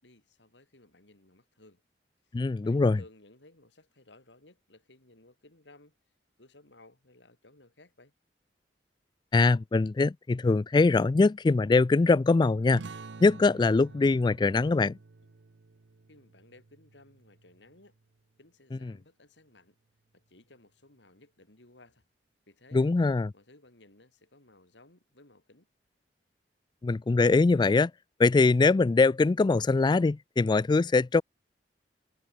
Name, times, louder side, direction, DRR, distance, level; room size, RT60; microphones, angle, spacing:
voice 1, 0.0-1.8 2.2-6.0 6.4-8.1 16.1-18.0 18.4-19.7 20.1-22.0 22.5-22.9 23.3-25.7, left 2 dB, 80° left, 4.2 m, -58 dB
voice 2, 2.3-3.0 9.3-12.8 13.2-15.0 22.7-23.3 26.8-27.9 28.2-31.2, left 3 dB, 25° left, 0.3 m, -22 dB
sound 1, 12.7-17.9, right 3 dB, 75° right, 0.7 m, -48 dB
head